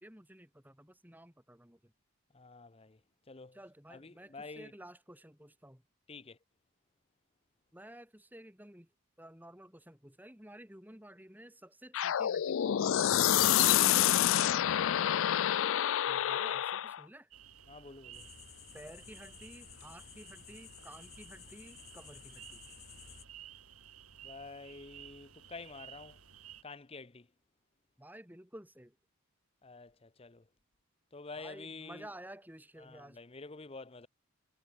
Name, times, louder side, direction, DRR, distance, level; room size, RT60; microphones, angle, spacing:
voice 1, 0.0-1.9 3.5-5.8 7.7-8.9 9.2-13.3 16.1-17.3 18.7-22.6 28.0-29.0 31.4-33.2, right 1 dB, 10° right, 2.6 m, -53 dB
voice 2, 2.3-3.0 3.3-3.6 3.9-4.7 6.1-6.4 14.1-14.6 17.7-18.2 24.2-26.2 26.6-27.3 29.6-30.4 31.1-32.1 32.8-34.1, left 3 dB, 25° left, 0.7 m, -48 dB
sound 1, 11.9-17.0, left 11 dB, 60° left, 0.3 m, -28 dB
sound 2, 17.3-26.6, right 9 dB, 85° right, 8.0 m, -55 dB
sound 3, 18.1-23.3, left 8 dB, 45° left, 4.3 m, -54 dB
head